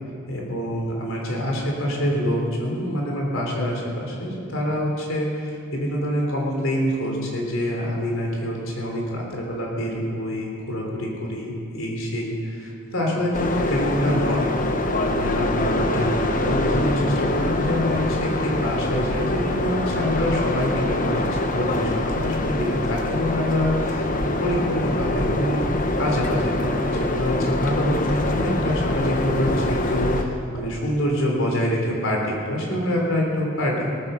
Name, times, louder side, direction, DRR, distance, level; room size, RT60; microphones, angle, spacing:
voice 1, 0.3-14.5 14.8-25.7 26.0-34.0, equal, 75° left, -1 dB, 3.4 m, -26 dB
sound 1, 13.3-30.2, left 2 dB, 40° left, 1.0 m, -24 dB
18.5 x 10.0 x 6.9 m, 2.4 s
head